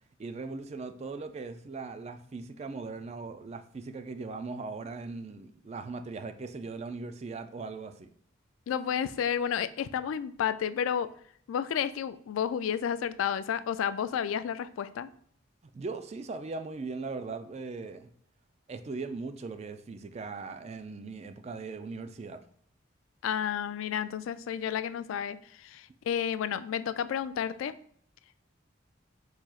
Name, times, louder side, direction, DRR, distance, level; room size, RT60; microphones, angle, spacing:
voice 1, 0.2-8.1 15.7-18.1 18.7-22.4, right 4 dB, 35° right, 9 dB, 0.3 m, -39 dB
voice 2, 8.7-11.1 11.5-15.1 23.2-27.7, left 8 dB, 80° left, 14 dB, 0.3 m, -31 dB
4.6 x 4.2 x 2.4 m, 0.62 s
head